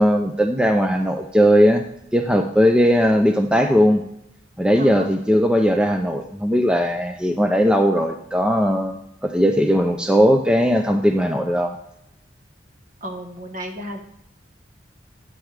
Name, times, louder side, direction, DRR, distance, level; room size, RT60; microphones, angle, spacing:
voice 1, 0.0-1.8 2.1-4.0 4.6-11.7, equal, 5° right, 5 dB, 0.4 m, -18 dB
voice 2, 4.8-5.1 13.0-14.0, equal, 45° right, 4 dB, 1.3 m, -33 dB
11.5 x 8.3 x 3.3 m, 0.80 s
head